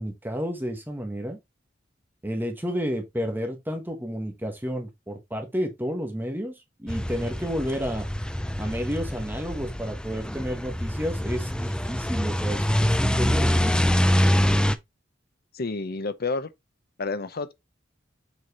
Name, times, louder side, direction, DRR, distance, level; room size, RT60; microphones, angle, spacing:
voice 1, 0.0-1.4 2.2-8.1 8.6-13.8, equal, 10° right, 1.3 m, -31 dB
sound 1, 6.9-14.8, equal, 5° left, 0.5 m, -25 dB
voice 2, 15.5-16.5 17.0-17.5, left 3 dB, 55° left, 0.7 m, -29 dB
7.0 x 4.6 x 3.0 m
head